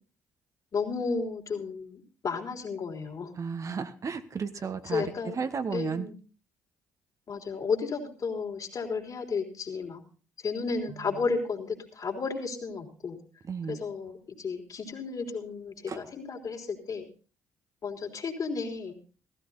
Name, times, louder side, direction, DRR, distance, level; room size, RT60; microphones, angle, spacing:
voice 1, 0.7-3.3 4.8-5.4 5.7-6.2 7.3-10.0 10.4-13.2 13.7-17.0 17.8-19.0, left 4 dB, 50° left, 3 dB, 3.6 m, -33 dB
voice 2, 3.4-5.0 5.4-6.1 13.5-13.8 15.9-16.0, right 5 dB, 40° right, 10 dB, 1.2 m, -33 dB
15.5 x 14.0 x 4.0 m, 0.37 s
hypercardioid pair, 45°, 8 cm